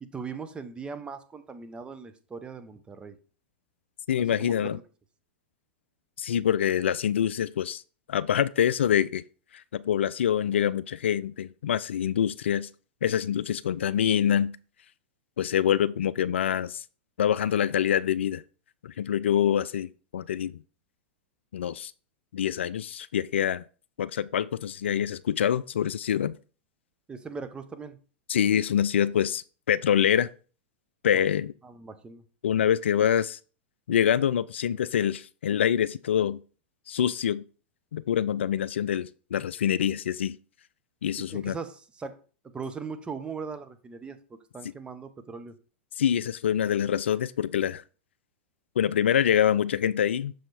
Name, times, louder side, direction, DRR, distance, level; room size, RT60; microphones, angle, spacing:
voice 1, 0.0-3.2 4.4-4.8 27.1-28.0 31.1-31.2 31.6-32.2 41.3-42.2 42.5-45.5, right 5 dB, 15° right, 0.8 m, -39 dB
voice 2, 4.1-4.8 6.2-7.8 8.1-9.2 9.7-12.7 13.0-14.5 15.4-16.8 17.2-18.4 18.8-20.6 21.5-21.9 22.3-23.6 24.0-26.3 28.3-30.3 31.0-31.5 32.4-33.4 33.9-36.4 36.9-37.4 37.9-40.4 41.0-41.6 46.0-47.8 48.8-50.3, left 9 dB, 80° left, 0.3 m, -25 dB
6.4 x 4.5 x 4.1 m
hypercardioid pair, 105°, 6 cm